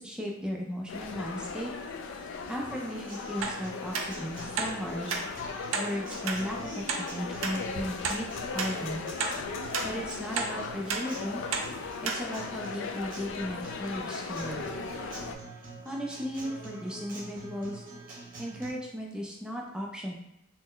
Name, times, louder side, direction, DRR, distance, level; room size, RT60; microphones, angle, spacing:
voice 1, 0.0-1.7 2.5-5.2 5.7-9.0 9.8-11.4 12.0-14.7 15.8-17.8 18.4-20.1, equal, 5° right, -2 dB, 0.4 m, -36 dB
sound 1, 0.9-15.4, left 4 dB, 65° left, 0.3 m, -38 dB
Acoustic guitar, 2.7-18.7, right 2 dB, 45° right, 0.9 m, -46 dB
sound 2, 3.4-3.6 3.9-4.1 4.6-4.7 5.1-5.2 5.7-5.9 6.3-6.4 6.9-7.0 7.4-7.5 8.0-8.2 8.6-8.7 9.2-9.4 9.7-9.9 10.4-10.5 10.9-11.0 11.5-11.7 12.0-12.2 12.7-12.8, right 5 dB, 75° right, 0.5 m, -31 dB
3.0 x 2.1 x 3.7 m, 0.84 s
head